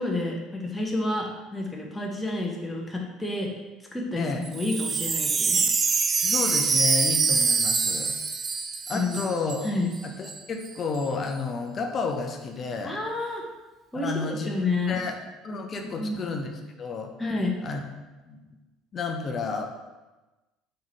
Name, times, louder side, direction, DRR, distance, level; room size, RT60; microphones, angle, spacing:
voice 1, 0.0-3.5 3.9-5.6 8.9-9.2 9.6-9.9 12.8-13.4 13.9-15.0 16.0-16.3 17.2-17.5, left 2 dB, 10° left, -1 dB, 1.0 m, -29 dB
voice 2, 4.2-4.5 6.2-8.1 8.9-9.7 10.0-13.0 13.9-15.2 15.4-16.5 16.8-17.1 17.6-17.8 18.3-18.4 18.9-19.7, left 4 dB, 40° left, 3 dB, 0.6 m, -31 dB
Wind chime, 4.5-9.7 9.9-10.0 10.2-10.7, right 5 dB, 35° right, 0.4 m, -25 dB
3.7 x 3.2 x 4.0 m, 1.1 s
hypercardioid pair, 65°, 0 cm